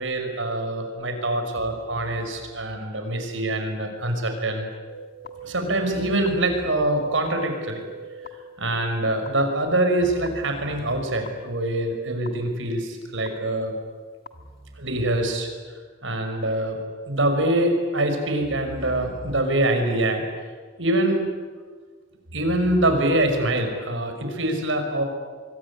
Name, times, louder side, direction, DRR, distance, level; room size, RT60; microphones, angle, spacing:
voice 1, 0.0-4.7 5.4-7.8 8.6-13.7 14.8-15.5 16.0-16.8 17.1-20.2 20.8-21.3 22.3-25.0, right 1 dB, 75° right, 5 dB, 5.6 m, -24 dB
sound 1, 4.9-8.3 9.3-9.4 10.3-10.4 11.3-11.4 12.3-12.4 13.3-13.4 14.3-14.4, right 3 dB, 50° left, 1.8 m, -40 dB
26.0 x 22.5 x 9.8 m, 1.5 s
head